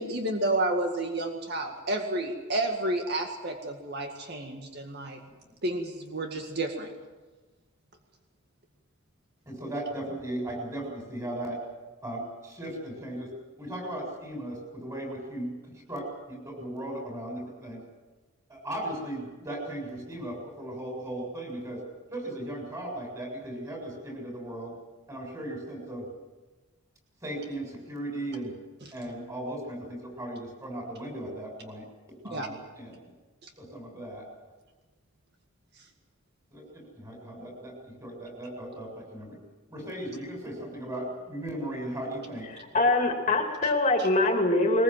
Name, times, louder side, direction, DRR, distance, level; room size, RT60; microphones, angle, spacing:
voice 1, 0.0-5.2 5.6-6.9 32.3-32.5 33.4-33.5 44.0-44.1, right 2 dB, 50° right, 3 dB, 2.1 m, -30 dB
voice 2, 9.5-11.6 12.0-13.3 13.6-17.8 18.5-21.8 22.1-24.7 25.1-26.1 27.2-28.5 28.9-31.8 32.2-33.1 33.6-34.3 36.5-39.4 39.7-42.5, right 1 dB, 15° right, 1 dB, 7.2 m, -37 dB
voice 3, 42.5-44.8, left 2 dB, 35° left, 2 dB, 2.4 m, -24 dB
22.5 x 21.0 x 7.6 m, 1.2 s
head